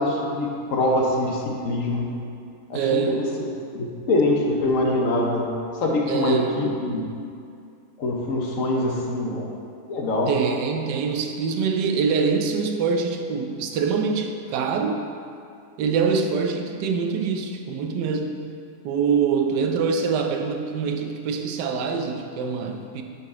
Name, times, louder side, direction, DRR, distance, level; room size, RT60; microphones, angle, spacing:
voice 1, 0.0-2.1 2.7-3.2 3.7-5.5 5.7-7.0 8.0-9.5 9.9-10.3, left 2 dB, 60° left, -1 dB, 1.1 m, -24 dB
voice 2, 2.7-3.3 6.1-6.7 10.3-15.0 15.8-18.5 18.8-23.0, right 5 dB, 90° right, 4 dB, 1.2 m, -24 dB
10.0 x 4.2 x 3.6 m, 2.5 s
omnidirectional pair, 1.8 m